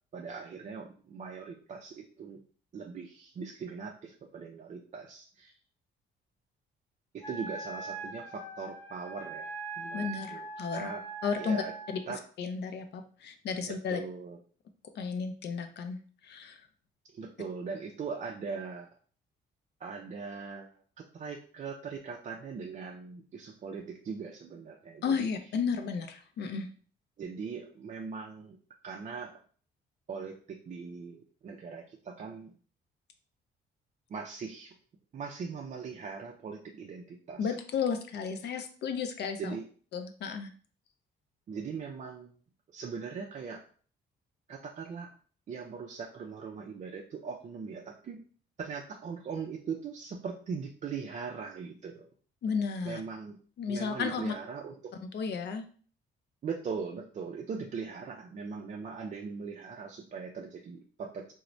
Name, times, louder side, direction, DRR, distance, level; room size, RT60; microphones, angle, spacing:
voice 1, 0.1-2.4 2.7-5.5 7.1-11.0 11.4-11.7 12.1-12.2 13.6-14.4 17.1-18.9 19.8-25.3 27.2-28.6 28.8-29.4 30.1-32.5 34.1-34.7 35.1-37.6 39.4-39.6 41.5-42.3 42.7-43.6 44.5-45.1 45.5-48.2 48.6-52.1 52.8-53.4 53.7-54.9 56.4-61.3, right 5 dB, 40° right, 1 dB, 0.4 m, -40 dB
Wind instrument woodwind instrument, 7.2-12.1, right 3 dB, 15° left, 0.5 m, -41 dB
voice 2, 9.9-10.9 11.2-12.0 12.4-14.0 15.0-16.7 25.0-26.7 37.4-39.5 39.9-40.5 52.4-53.0 53.6-54.3 55.1-55.6, left 6 dB, 60° left, 7 dB, 0.5 m, -33 dB
3.0 x 2.1 x 2.5 m, 0.43 s
cardioid pair, 90°, 20 cm